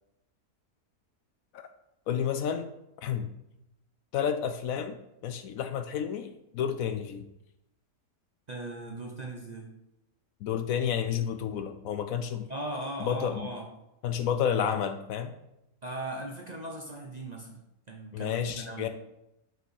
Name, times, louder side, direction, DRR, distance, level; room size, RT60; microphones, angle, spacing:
voice 1, 2.1-2.7 3.0-3.3 4.1-5.0 5.2-7.3 10.4-12.5 13.0-13.5 14.0-15.3 18.1-18.9, left 8 dB, 70° left, 9 dB, 0.9 m, -30 dB
voice 2, 8.5-9.7 12.5-13.7 15.8-17.6 17.9-18.9, right 1 dB, 35° right, 1 dB, 0.7 m, -38 dB
6.1 x 5.2 x 4.8 m, 0.87 s
omnidirectional pair, 1.6 m